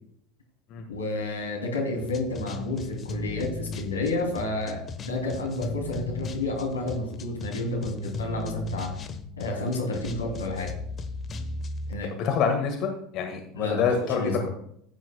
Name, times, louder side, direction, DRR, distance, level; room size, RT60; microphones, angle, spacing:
voice 1, 0.9-8.9 9.4-10.7 11.9-12.1 13.5-13.8 14.1-14.5, left 2 dB, 80° left, 0 dB, 2.9 m, -30 dB
sound 1, 2.0-11.9, left 3 dB, 30° left, 1.0 m, -37 dB
voice 2, 12.2-14.2, left 6 dB, 45° left, 4 dB, 1.6 m, -26 dB
15.0 x 9.3 x 2.3 m, 0.69 s
figure-of-eight pair, 75°, 0 cm